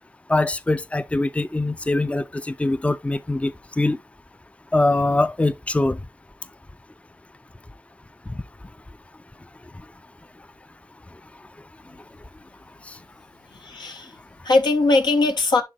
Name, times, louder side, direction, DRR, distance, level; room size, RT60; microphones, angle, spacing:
voice 1, 0.3-4.0 4.7-6.0 12.9-13.0, left 2 dB, 15° left, 0.5 m, -23 dB
voice 2, 13.5-15.6, left 3 dB, 85° left, 1.2 m, -21 dB
10.0 x 3.6 x 3.2 m
cardioid pair, 45°, 7 cm